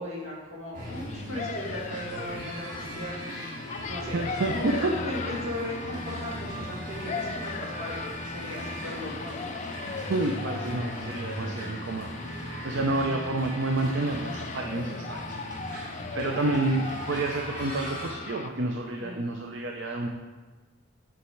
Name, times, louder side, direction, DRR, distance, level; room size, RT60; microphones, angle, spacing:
voice 1, 0.0-3.4 3.9-4.2 4.5-9.5 19.0-19.3, left 1 dB, 75° right, -4 dB, 2.0 m, -37 dB
sound 1, 0.7-18.1, equal, 40° right, 1.7 m, -39 dB
sound 2, 0.9-18.5, left 5 dB, 35° left, 0.3 m, -38 dB
voice 2, 4.1-4.7 10.1-12.1 12.6-15.6 16.1-20.1, right 2 dB, 60° right, 2 dB, 0.5 m, -29 dB
6.8 x 5.2 x 4.5 m, 1.3 s
head